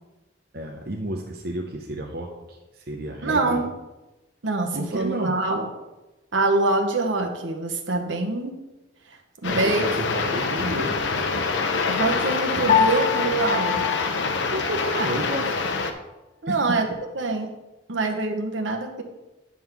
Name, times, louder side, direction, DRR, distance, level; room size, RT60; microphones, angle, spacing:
voice 1, 0.5-3.6 4.7-5.4 9.4-11.1 14.5-15.5 16.5-16.8, right 1 dB, 55° right, 1 dB, 0.7 m, -31 dB
voice 2, 3.2-3.7 4.4-5.7 6.3-8.6 9.4-9.9 11.9-13.9 15.0-15.1 16.4-16.9 17.1-17.6 17.9-19.0, right 3 dB, 80° right, 2 dB, 1.1 m, -24 dB
sound 1, 9.4-15.9, left 4 dB, 75° left, 0.7 m, -25 dB
Piano, 12.7-15.2, left 7 dB, 45° left, 0.9 m, -26 dB
9.6 x 3.6 x 5.9 m, 1.1 s
head